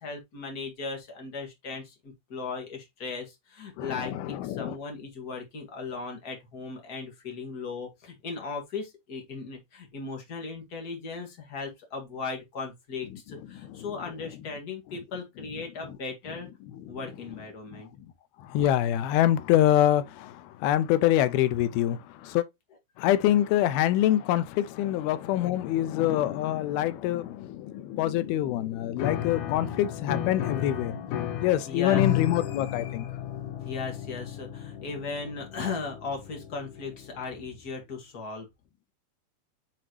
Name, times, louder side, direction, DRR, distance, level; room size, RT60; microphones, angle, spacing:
voice 1, 0.0-16.5 16.9-17.9 31.7-32.0 33.6-38.5, left 4 dB, 40° left, 1.3 m, -37 dB
voice 2, 3.8-4.8 17.7-17.8 18.5-22.4 23.0-33.1, left 12 dB, 90° left, 2.5 m, -25 dB
Piano, 29.0-37.5, left 11 dB, 75° left, 2.0 m, -33 dB
7.6 x 4.0 x 3.1 m
omnidirectional pair, 4.4 m